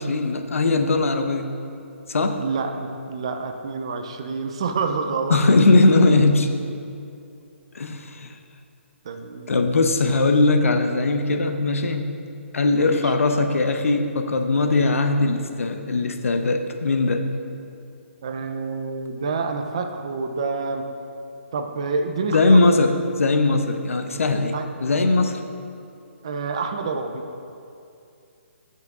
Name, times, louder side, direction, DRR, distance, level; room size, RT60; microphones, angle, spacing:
voice 1, 0.0-1.5 2.1-2.4 5.3-6.6 7.7-8.3 9.5-12.2 12.5-17.3 22.3-24.5 24.8-25.4, left 3 dB, 80° left, 7 dB, 0.7 m, -20 dB
voice 2, 2.4-5.4 9.0-9.5 12.7-13.1 18.2-20.8 21.5-22.7 24.5-24.7 26.2-27.2, right 4 dB, 25° right, 6 dB, 0.4 m, -28 dB
13.0 x 5.8 x 3.5 m, 2.5 s
hypercardioid pair, 180°, 7 cm